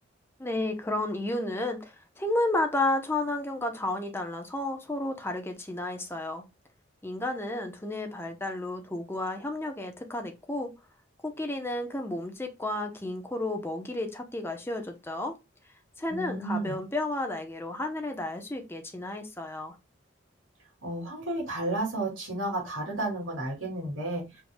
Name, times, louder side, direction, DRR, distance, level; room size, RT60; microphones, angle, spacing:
voice 1, 0.4-6.4 7.0-10.7 11.2-15.3 16.0-19.8, left 2 dB, 10° left, 0.8 m, -32 dB
voice 2, 16.1-16.8 20.8-24.2, right 2 dB, 85° right, 2.9 m, -32 dB
5.2 x 4.5 x 2.3 m
head